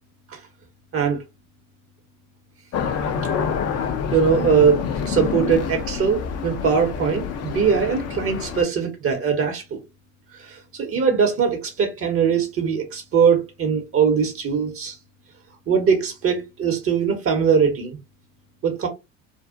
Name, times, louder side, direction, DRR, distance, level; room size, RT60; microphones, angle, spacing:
sound 1, 2.7-8.6, left 6 dB, 40° left, 0.5 m, -27 dB
voice 1, 4.1-9.8 10.4-15.0 15.7-18.0 18.6-18.9, right 6 dB, 35° right, 0.7 m, -21 dB
2.6 x 2.1 x 2.4 m
hypercardioid pair, 85°, 41 cm